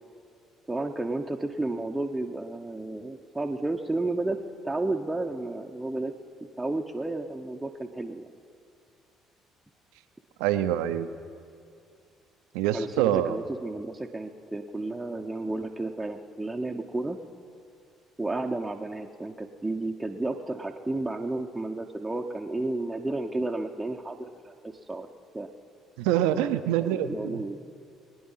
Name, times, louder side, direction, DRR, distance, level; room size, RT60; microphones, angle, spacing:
voice 1, 0.7-4.4 4.6-6.1 6.6-8.2 12.7-17.2 18.2-25.1 25.3-25.5 26.8-27.6, right 2 dB, 15° right, 1 dB, 0.8 m, -32 dB
voice 2, 10.4-11.1 12.5-13.4 26.0-27.5, right 11 dB, 80° right, 11 dB, 0.6 m, -25 dB
21.5 x 9.7 x 5.7 m, 2.4 s
hypercardioid pair, 55°, 0 cm